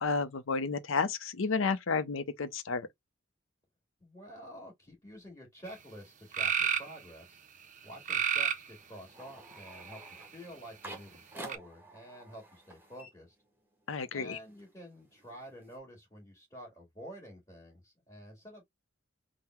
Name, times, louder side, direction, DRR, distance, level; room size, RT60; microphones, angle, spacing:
voice 1, 0.0-2.9 13.9-14.4, left 4 dB, 70° left, 0.6 m, -31 dB
voice 2, 4.0-7.4 7.8-10.0 10.3-13.3 14.1-18.6, right 1 dB, 15° left, 1.9 m, -49 dB
sound 1, 5.7-5.8 6.3-6.9 8.1-8.7 9.5-10.2 11.5-11.6, right 7 dB, 35° right, 0.5 m, -30 dB
sound 2, 8.8-13.9 14.2-15.8, right 1 dB, 10° right, 1.0 m, -51 dB
3.8 x 2.1 x 4.2 m
head